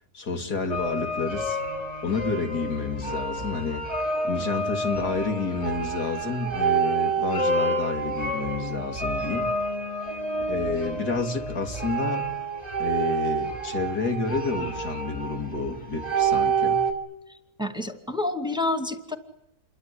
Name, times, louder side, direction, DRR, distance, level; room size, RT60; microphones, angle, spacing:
voice 1, 0.1-1.6 2.0-3.9 4.2-9.5 10.5-12.2 12.8-16.8, left 4 dB, 80° left, 3.2 m, -29 dB
sound 1, 0.7-16.9, right 3 dB, 25° left, 5.5 m, -28 dB
voice 2, 17.3-19.2, left 2 dB, 5° right, 2.2 m, -29 dB
28.5 x 23.5 x 8.4 m
omnidirectional pair, 1.7 m